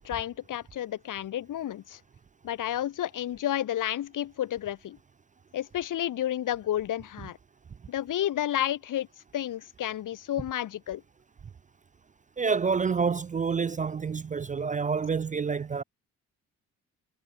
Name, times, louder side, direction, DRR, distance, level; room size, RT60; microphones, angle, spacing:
voice 1, 0.0-2.0 2.4-5.0 5.5-7.4 7.9-9.1 9.3-11.0, left 12 dB, 70° left, 1.7 m, -31 dB
voice 2, 12.4-15.8, right 5 dB, 25° right, 0.4 m, -28 dB
supercardioid pair, 65°, 33 cm